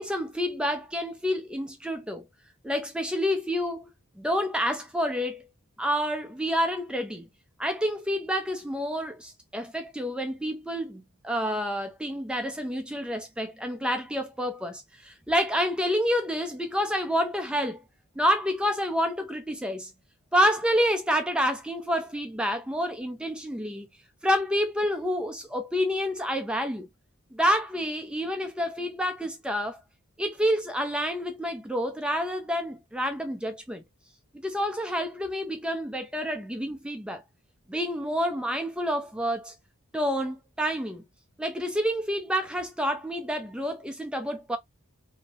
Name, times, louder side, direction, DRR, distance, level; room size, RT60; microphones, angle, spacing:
voice 1, 0.0-2.2 2.6-3.9 4.2-5.4 5.8-7.3 7.6-17.8 18.2-19.9 20.3-23.9 24.2-26.9 27.3-29.8 30.2-33.8 34.4-37.2 37.7-39.5 39.9-41.0 41.4-44.6, equal, 5° right, 0.4 m, -28 dB
2.8 x 2.0 x 2.6 m
head